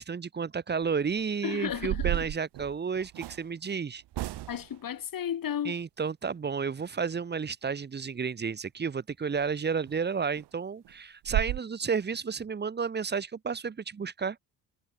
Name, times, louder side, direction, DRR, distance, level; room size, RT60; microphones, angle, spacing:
voice 1, 0.0-4.0 5.6-14.4, right 5 dB, 25° right, 0.8 m, -32 dB
sound 1, 0.8-1.1 1.6-3.4 4.1-4.8 9.3-9.4 9.9-10.0 10.4-10.5 10.8-10.9 11.2-11.6, right 15 dB, 80° right, 1.4 m, -33 dB
voice 2, 1.4-2.3 4.5-5.8, left 9 dB, 55° left, 2.3 m, -33 dB
cardioid pair, 70°, 40 cm